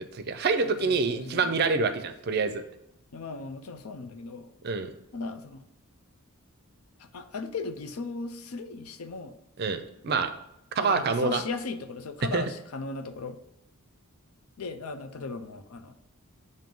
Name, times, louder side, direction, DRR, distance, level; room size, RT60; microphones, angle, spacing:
voice 1, 0.0-2.6 4.6-4.9 9.6-10.3 10.8-11.4 12.3-12.4, right 4 dB, 45° right, 9 dB, 0.5 m, -26 dB
voice 2, 0.6-1.7 3.1-4.5 5.1-5.6 7.0-9.3 10.1-10.2 10.8-13.4 14.6-15.9, left 4 dB, 80° left, 9 dB, 0.5 m, -37 dB
7.5 x 2.7 x 5.3 m, 0.84 s
head